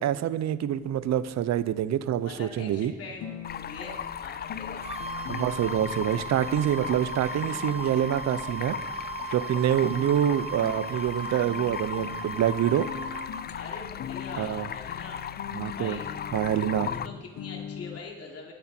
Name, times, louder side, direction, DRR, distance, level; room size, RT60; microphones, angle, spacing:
voice 1, 0.0-2.9 5.3-8.8 9.3-12.9 14.3-14.7 15.5-16.0 16.3-16.9, right 10 dB, 60° right, 15 dB, 0.7 m, -26 dB
sound 1, 0.7-18.0, left 9 dB, 70° left, 0.8 m, -43 dB
voice 2, 2.2-4.9 13.5-15.2 15.7-16.1 16.8-18.5, left 4 dB, 50° left, -1 dB, 3.1 m, -43 dB
Stream, 3.4-17.1, left 8 dB, 35° left, 0.4 m, -37 dB
sound 2, 4.8-13.5, right 6 dB, 20° right, 1.3 m, -38 dB
22.0 x 8.2 x 4.4 m, 1.5 s
cardioid pair, 90°, 30 cm